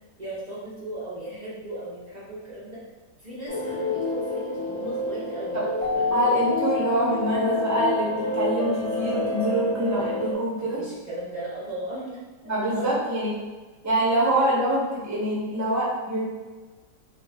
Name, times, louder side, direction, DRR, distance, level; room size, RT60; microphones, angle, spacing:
voice 1, 0.2-2.8 3.2-5.6 5.9-6.3 10.8-12.2 12.6-12.9, right 1 dB, 90° right, -9 dB, 0.3 m, -37 dB
sound 1, 3.5-10.3, left 1 dB, 60° left, 1.3 m, -29 dB
Keyboard (musical), 5.8-8.1, left 5 dB, 80° left, 0.3 m, -29 dB
voice 2, 6.1-10.9 12.4-13.4 13.8-16.2, right 1 dB, 20° right, -6 dB, 0.4 m, -25 dB
3.9 x 2.5 x 3.5 m, 1.3 s
omnidirectional pair, 2.0 m